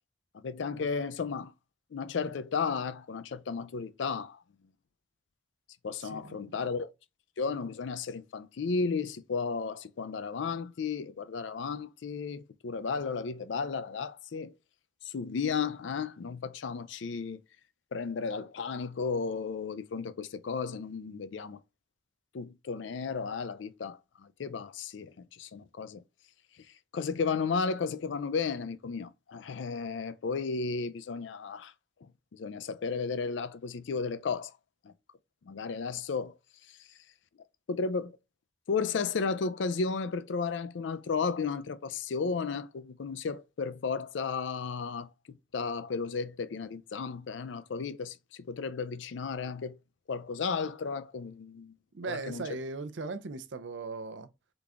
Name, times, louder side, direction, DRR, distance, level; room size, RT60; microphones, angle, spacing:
voice 1, 0.3-1.5 1.9-4.4 5.8-6.9 7.4-14.5 15.1-17.4 17.9-21.6 22.3-26.0 26.9-31.7 32.3-34.5 34.8-34.9 35.4-36.3 37.7-38.1 38.7-49.8 50.1-51.7 52.0-52.4, left 5 dB, 90° left, 0.4 m, -34 dB
voice 2, 6.0-6.6 51.9-54.3, right 3 dB, 85° right, 0.6 m, -38 dB
3.9 x 3.5 x 3.4 m
head